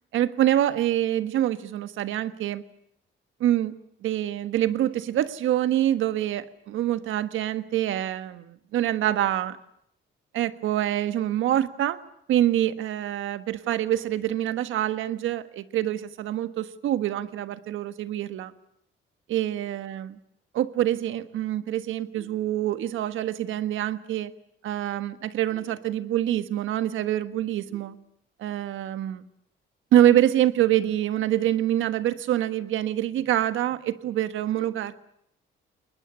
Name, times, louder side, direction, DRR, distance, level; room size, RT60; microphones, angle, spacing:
voice 1, 0.1-2.6 3.4-3.7 4.0-9.6 10.3-12.0 12.3-18.5 19.3-20.2 20.5-24.3 24.6-28.0 28.4-29.2 29.9-34.9, right 12 dB, 85° right, 12 dB, 1.4 m, -25 dB
22.0 x 20.5 x 9.9 m, 0.74 s
cardioid pair, 90°, 20 cm